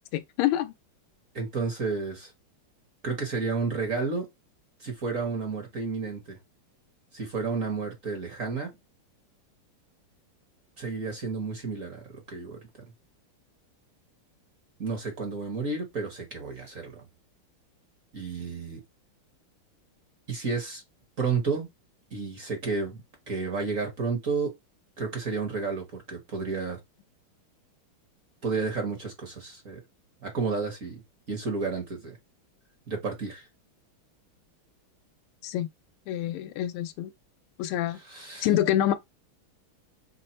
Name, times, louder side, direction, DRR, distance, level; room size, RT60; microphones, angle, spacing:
voice 1, 0.1-0.7 35.4-35.7 36.1-37.1 37.6-38.0 38.4-38.9, left 12 dB, 85° left, 1.5 m, -26 dB
voice 2, 1.3-2.3 3.0-4.3 4.8-6.4 7.1-8.7 10.8-12.6 14.8-17.0 18.1-18.8 20.3-20.8 21.2-21.7 22.1-24.5 25.0-26.8 28.4-29.8 30.2-31.0 31.3-32.2 32.9-33.5 38.0-38.5, right 4 dB, 45° right, 1.2 m, -31 dB
5.7 x 2.1 x 4.3 m
omnidirectional pair, 2.4 m